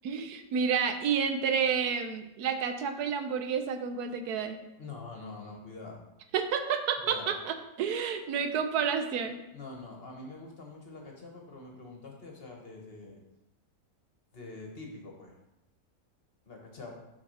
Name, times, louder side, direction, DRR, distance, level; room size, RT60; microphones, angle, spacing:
voice 1, 0.0-4.6 6.3-9.4, right 6 dB, 85° right, 7 dB, 1.2 m, -30 dB
voice 2, 4.8-6.0 7.0-7.4 9.5-13.2 14.3-15.4 16.5-17.0, left 3 dB, 40° left, 0 dB, 1.3 m, -45 dB
6.0 x 4.7 x 5.5 m, 0.93 s
omnidirectional pair, 1.6 m